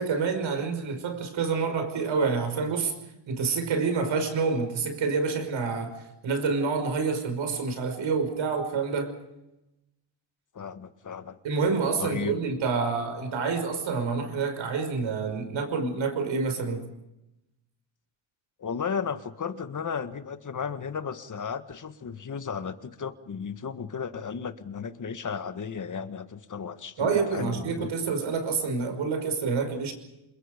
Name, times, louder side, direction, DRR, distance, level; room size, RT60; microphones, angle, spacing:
voice 1, 0.0-2.9 3.3-9.1 11.4-16.8 27.0-29.9, right 5 dB, 70° right, 7 dB, 5.7 m, -28 dB
voice 2, 10.5-11.4 12.0-12.3 18.6-27.9, left 6 dB, 40° left, 11 dB, 1.7 m, -34 dB
27.5 x 22.0 x 5.2 m, 0.92 s
cardioid pair, 85°, 48 cm